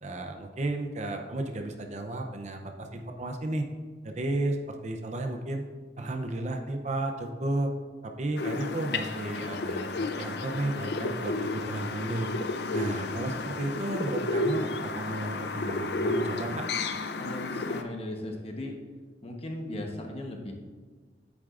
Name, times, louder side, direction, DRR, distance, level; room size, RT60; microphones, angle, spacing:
voice 1, 0.0-3.7 4.0-4.6 4.8-5.6 6.0-7.7 8.0-12.3 12.7-16.7, right 2 dB, 40° right, 4 dB, 0.6 m, -33 dB
sound 1, 8.4-17.8, left 2 dB, 65° left, 0.5 m, -32 dB
voice 2, 17.2-18.8 19.2-20.5, left 1 dB, 35° left, 2 dB, 1.0 m, -37 dB
9.8 x 8.4 x 2.5 m, 1.4 s
head